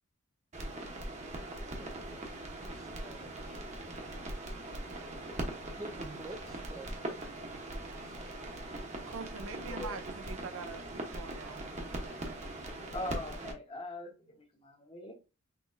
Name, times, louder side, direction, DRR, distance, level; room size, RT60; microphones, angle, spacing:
sound 1, 0.5-13.5, right 1 dB, 35° right, 0.9 m, -41 dB
voice 1, 1.6-2.2 2.6-3.3 5.8-7.5 8.0-8.7, right 2 dB, 15° right, 0.4 m, -49 dB
voice 2, 9.1-12.4, right 4 dB, 75° right, 0.6 m, -45 dB
voice 3, 9.6-10.0 12.9-15.1, left 2 dB, 25° left, 1.1 m, -42 dB
6.0 x 3.0 x 2.5 m
head